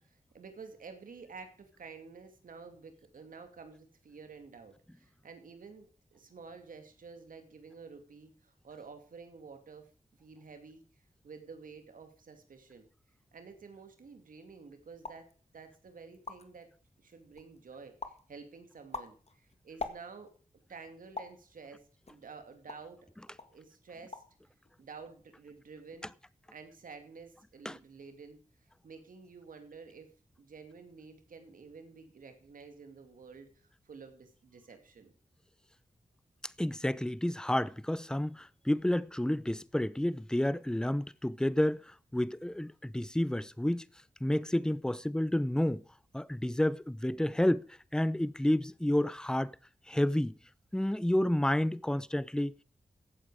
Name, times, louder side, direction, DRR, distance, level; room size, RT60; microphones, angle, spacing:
voice 1, 0.0-9.9 10.2-10.8 11.2-12.9 13.3-15.3 15.5-16.7 17.0-20.3 20.7-23.1 23.5-24.2 24.8-26.1 26.5-28.4 28.8-30.1 30.4-35.1, right 5 dB, 90° right, 2.4 m, -50 dB
sound 1, 15.0-15.3 15.8-15.9 16.1-16.6 17.1-17.6 18.0-18.3 18.7-20.4 21.2-21.4 22.1-23.0 23.4-23.6 23.9-24.4 24.7-25.2, left 3 dB, 50° left, 1.8 m, -43 dB
voice 2, 36.6-43.9 44.2-45.8 46.1-49.5 49.9-50.3 50.7-52.6, left 1 dB, 5° left, 0.7 m, -30 dB
15.5 x 8.7 x 4.9 m
cardioid pair, 50°, 14 cm